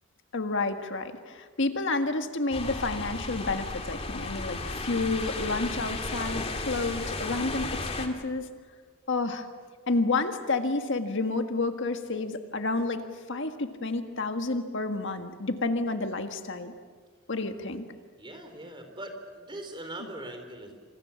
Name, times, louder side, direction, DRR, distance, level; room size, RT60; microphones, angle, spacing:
voice 1, 0.3-8.5 9.1-9.5 9.9-13.0 13.3-16.7 17.3-17.8, left 3 dB, 60° left, 7 dB, 1.7 m, -30 dB
sound 1, 2.5-8.1, left 2 dB, 30° left, 2.5 m, -34 dB
voice 2, 18.2-20.7, right 1 dB, 20° right, 5 dB, 4.0 m, -41 dB
27.5 x 27.0 x 7.2 m, 1.5 s
head